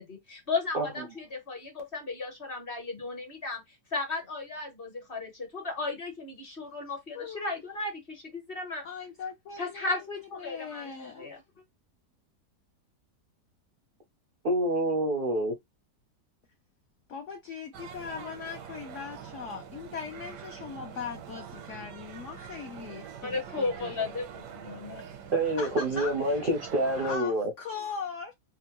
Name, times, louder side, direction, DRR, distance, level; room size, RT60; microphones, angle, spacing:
voice 1, 0.0-3.6 3.9-8.8 9.6-11.4 23.2-25.0, left 3 dB, 45° left, 0.9 m, -35 dB
voice 2, 7.1-7.6 8.8-11.3 17.1-24.0 25.6-26.4 27.0-28.3, left 6 dB, 70° left, 0.7 m, -40 dB
voice 3, 14.4-15.5 25.3-27.5, right 1 dB, 60° right, 0.5 m, -27 dB
sound 1, 17.7-27.2, right 8 dB, 90° right, 1.3 m, -44 dB
3.7 x 2.1 x 2.8 m
omnidirectional pair, 1.8 m